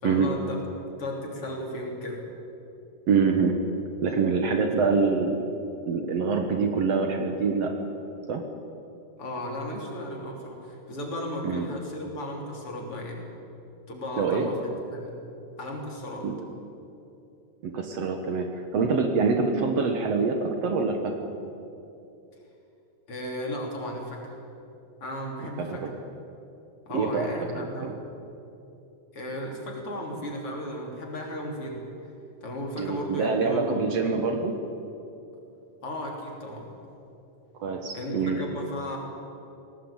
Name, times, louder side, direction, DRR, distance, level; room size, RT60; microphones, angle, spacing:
voice 1, 0.0-0.6 1.0-2.2 4.7-4.8 9.2-13.2 13.9-14.6 14.9-15.2 15.6-16.3 23.1-24.4 25.0-25.8 26.9-27.9 29.1-31.8 32.4-33.7 35.8-36.7 37.9-39.0, left 1 dB, 50° left, 0 dB, 4.3 m, -35 dB
voice 2, 3.1-3.6 4.0-5.4 5.9-7.7 8.3-8.4 11.4-11.6 14.2-14.5 16.2-16.3 17.6-21.3 25.7-25.9 26.9-27.3 27.5-27.9 32.8-34.6 37.6-38.4, right 4 dB, 60° right, 5 dB, 2.3 m, -25 dB
19.5 x 18.0 x 8.9 m, 2.8 s
omnidirectional pair, 3.3 m